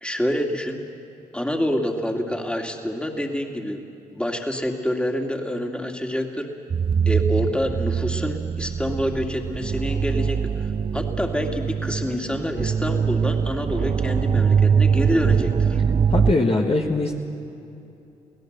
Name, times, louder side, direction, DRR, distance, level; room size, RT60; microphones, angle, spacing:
voice 1, 0.0-0.8 1.3-3.8 4.1-6.5 7.1-15.8, equal, 5° left, 2 dB, 2.5 m, -27 dB
sound 1, 6.7-16.3, right 6 dB, 30° right, 0.4 m, -22 dB
voice 2, 16.1-17.1, left 2 dB, 35° left, 1 dB, 1.6 m, -21 dB
24.5 x 17.0 x 6.7 m, 2.8 s
hypercardioid pair, 50°, 18 cm